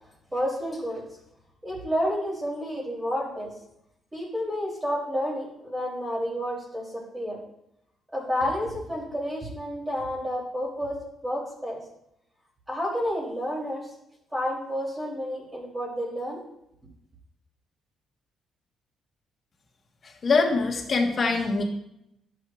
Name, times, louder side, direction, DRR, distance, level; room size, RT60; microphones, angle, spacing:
voice 1, 0.3-1.1 1.6-3.6 4.1-7.4 8.1-11.8 12.7-13.9 14.3-16.4, equal, 15° right, -4 dB, 3.4 m, -30 dB
voice 2, 20.2-21.6, left 4 dB, 45° left, 2 dB, 1.5 m, -23 dB
11.5 x 6.5 x 2.5 m, 0.80 s
cardioid pair, 90°, 0 cm